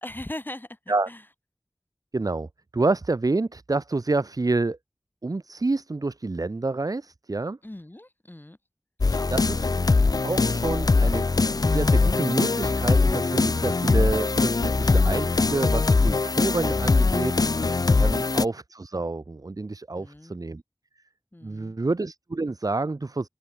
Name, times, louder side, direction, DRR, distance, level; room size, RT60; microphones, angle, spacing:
voice 1, 0.0-1.3 7.6-8.6 9.1-9.4 20.0-20.4 21.3-21.8, left 1 dB, 30° left, 5.2 m, -40 dB
voice 2, 2.1-4.8 5.2-7.6 9.3-9.7 10.2-11.3 11.6-17.7 18.0-20.6 21.4-23.3, right 3 dB, 75° right, 1.7 m, -28 dB
sound 1, 9.0-18.5, left 3 dB, 90° left, 0.9 m, -22 dB
open air
wide cardioid pair, 50°, 6 cm